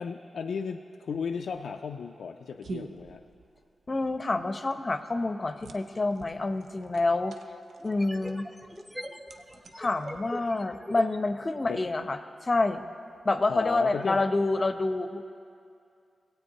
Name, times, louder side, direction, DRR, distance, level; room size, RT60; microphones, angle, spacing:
voice 1, 0.0-3.2 11.7-11.8 13.5-14.3, left 6 dB, 80° left, 4 dB, 0.3 m, -34 dB
sound 1, 1.1-10.7, right 3 dB, 75° right, 0.5 m, -48 dB
voice 2, 3.9-7.4 7.8-8.5 9.8-12.8 13.2-15.2, left 2 dB, 40° left, 10 dB, 0.6 m, -28 dB
sound 2, 6.4-6.5 7.8-11.8, equal, ahead, 0.7 m, -41 dB
18.0 x 8.1 x 2.8 m, 2.4 s
supercardioid pair, 40°, 0 cm